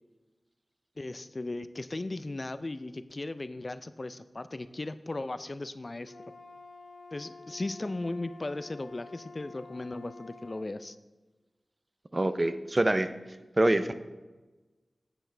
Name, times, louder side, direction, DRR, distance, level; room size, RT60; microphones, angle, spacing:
voice 1, 1.0-6.1 7.1-11.0, left 2 dB, 40° left, 13 dB, 0.3 m, -37 dB
Wind instrument woodwind instrument, 6.0-10.7, left 3 dB, 90° left, 1.7 m, -49 dB
voice 2, 12.1-13.1 13.6-13.9, right 1 dB, 30° right, 10 dB, 0.5 m, -25 dB
9.0 x 7.9 x 3.3 m, 1.2 s
wide cardioid pair, 65°, 0 cm